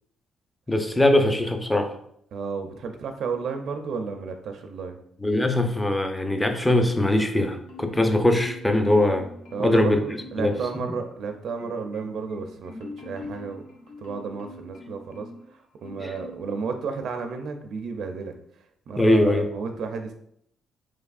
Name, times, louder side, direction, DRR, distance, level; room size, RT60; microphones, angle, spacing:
voice 1, 0.7-1.9 5.2-9.3 9.6-10.0 10.4-10.5 16.0-16.1 19.0-19.4, left 1 dB, 10° left, 6 dB, 0.5 m, -21 dB
voice 2, 2.3-5.0 9.5-13.6 14.0-20.1, right 5 dB, 70° right, 6 dB, 0.4 m, -32 dB
Marimba xylophone, 7.4-8.1 8.4-9.8 10.2-10.9 11.3-15.5 15.8-16.5 16.9-17.1, left 2 dB, 80° left, 0.8 m, -44 dB
4.7 x 3.3 x 2.4 m, 0.71 s
cardioid pair, 90°, 0 cm